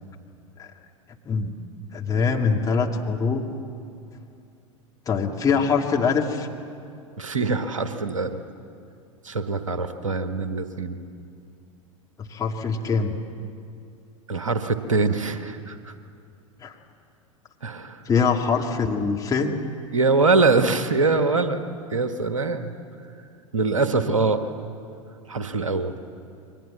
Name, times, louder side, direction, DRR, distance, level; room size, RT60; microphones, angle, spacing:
voice 1, 1.9-3.4 5.1-6.5 12.2-13.2 16.6-16.7 18.1-19.5, left 5 dB, 20° left, 1 dB, 2.3 m, -23 dB
voice 2, 7.2-8.4 9.2-11.0 14.3-15.9 17.6-18.0 19.9-21.6 21.9-22.7 23.5-24.4 25.3-25.9, right 3 dB, 70° right, 9 dB, 1.5 m, -23 dB
28.5 x 23.5 x 7.3 m, 2.5 s
figure-of-eight pair, 85°, 17 cm